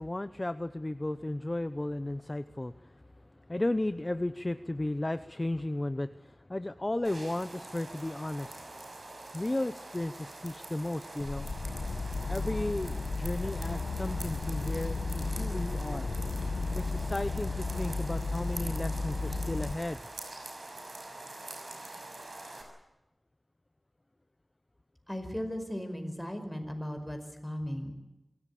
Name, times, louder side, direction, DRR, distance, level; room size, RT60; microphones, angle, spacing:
voice 1, 0.0-8.7 9.3-11.5 12.3-16.1 16.7-20.0, left 1 dB, 30° left, 12 dB, 0.8 m, -34 dB
sound 1, 7.0-22.6, right 2 dB, 75° right, 6.1 m, -45 dB
sound 2, 11.2-19.7, left 3 dB, 90° left, 1.4 m, -34 dB
voice 2, 25.1-27.9, equal, 5° left, 6 dB, 5.2 m, -37 dB
24.5 x 17.0 x 8.5 m, 1.0 s
wide cardioid pair, 60°, 0 cm